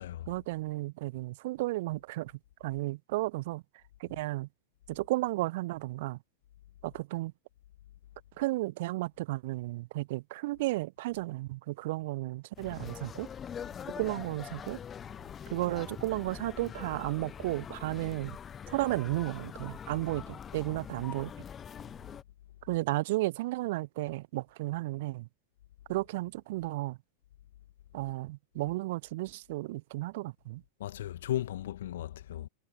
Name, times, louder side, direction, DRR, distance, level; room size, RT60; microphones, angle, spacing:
voice 1, 0.3-2.3 2.6-3.6 4.0-4.5 4.9-6.2 6.8-7.3 8.4-13.3 14.0-14.8 15.5-18.4 18.7-21.3 22.6-25.3 25.9-27.0 27.9-30.6, right 19 dB, 50° right, 0.7 m, -33 dB
sound 1, 12.6-22.2, left 8 dB, 25° left, 0.9 m, -44 dB
voice 2, 30.8-32.5, left 12 dB, 60° left, 2.1 m, -36 dB
figure-of-eight pair, 90°, 0 cm